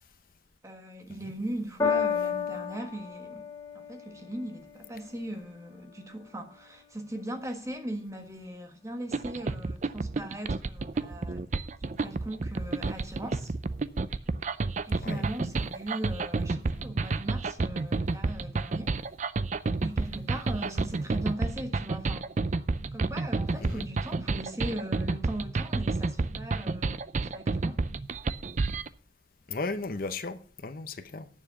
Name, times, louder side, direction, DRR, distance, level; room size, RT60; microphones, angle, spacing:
voice 1, 0.6-3.4 3.7-11.5 11.8-13.5 14.9-18.9 19.8-22.3 22.9-27.8, right 1 dB, 15° right, 1.5 m, -39 dB
Piano, 1.8-8.4 9.2-9.3, left 6 dB, 15° left, 3.3 m, -35 dB
sound 1, 9.1-28.9, right 3 dB, 40° right, 0.4 m, -30 dB
voice 2, 29.5-31.3, left 3 dB, 50° left, 0.7 m, -35 dB
9.0 x 7.4 x 7.0 m
head